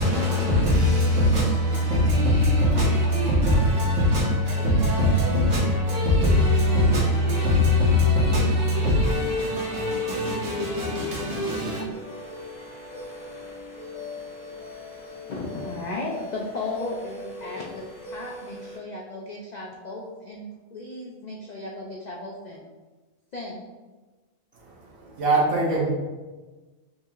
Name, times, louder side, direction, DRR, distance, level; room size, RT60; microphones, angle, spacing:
voice 1, 0.0-11.8, left 1 dB, 65° right, 1.6 m, -21 dB
sound 1, 11.9-18.8, left 2 dB, 30° left, 1.0 m, -40 dB
voice 2, 15.3-22.6 23.3-23.6, left 2 dB, 80° left, 0.3 m, -35 dB
voice 3, 25.0-25.9, right 3 dB, 85° right, 1.4 m, -22 dB
5.5 x 2.4 x 2.9 m
omnidirectional pair, 1.4 m